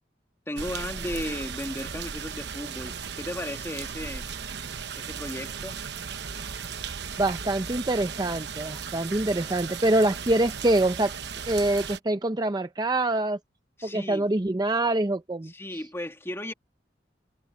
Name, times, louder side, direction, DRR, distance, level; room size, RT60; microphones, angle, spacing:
voice 1, 0.5-4.3 4.9-5.8 13.8-14.3 15.4-16.5, left 1 dB, 15° left, 2.1 m, -35 dB
sound 1, 0.6-12.0, right 6 dB, 65° right, 1.0 m, -36 dB
voice 2, 7.2-11.1 11.5-13.4 13.8-15.5, right 2 dB, 20° right, 0.6 m, -25 dB
head